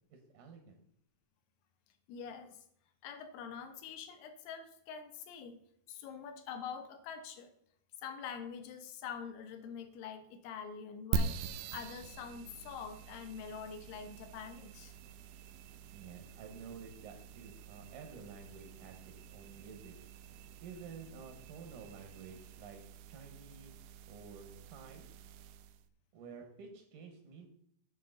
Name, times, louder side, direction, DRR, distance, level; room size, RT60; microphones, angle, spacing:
voice 1, 0.1-0.8 15.9-19.9 20.6-22.8 23.1-23.7 24.1-25.1 26.1-27.5, right 5 dB, 65° right, 4 dB, 2.3 m, -51 dB
voice 2, 2.1-2.6 3.0-5.6 5.9-7.5 8.0-11.3 11.7-14.9, left 7 dB, 80° left, 8 dB, 2.9 m, -45 dB
sound 1, 11.1-25.8, right 5 dB, 85° right, 2.7 m, -44 dB
8.5 x 7.1 x 3.8 m, 0.70 s
omnidirectional pair, 4.6 m